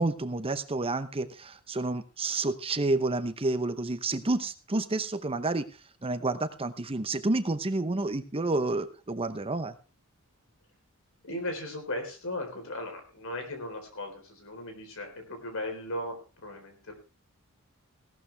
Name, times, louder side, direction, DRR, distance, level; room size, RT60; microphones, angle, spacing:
voice 1, 0.0-5.7 6.0-9.7, right 2 dB, 25° right, 11 dB, 0.8 m, -29 dB
voice 2, 11.2-16.9, left 1 dB, 65° left, 5 dB, 4.1 m, -37 dB
17.0 x 12.0 x 3.4 m, 0.33 s
head